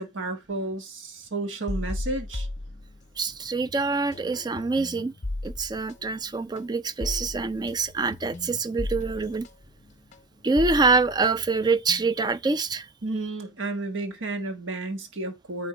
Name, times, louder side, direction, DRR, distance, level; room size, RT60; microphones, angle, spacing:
voice 1, 0.0-2.5 13.0-15.7, right 2 dB, 75° right, 1.4 m, -32 dB
sound 1, 1.7-3.4 3.7-12.3, left 1 dB, 35° left, 0.7 m, -36 dB
voice 2, 3.2-5.1 5.4-9.5 10.4-12.9, right 3 dB, 20° right, 0.3 m, -25 dB
9.0 x 3.7 x 4.3 m
head